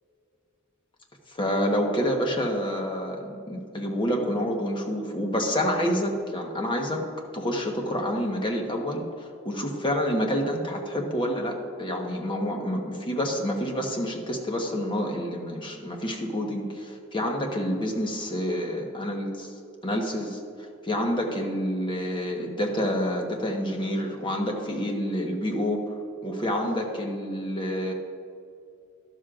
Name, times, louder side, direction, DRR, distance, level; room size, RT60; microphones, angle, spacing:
voice 1, 1.3-7.0 7.3-19.5 19.8-26.0 26.2-27.9, equal, 25° left, 1 dB, 1.1 m, -28 dB
12.5 x 12.0 x 2.5 m, 2.5 s
head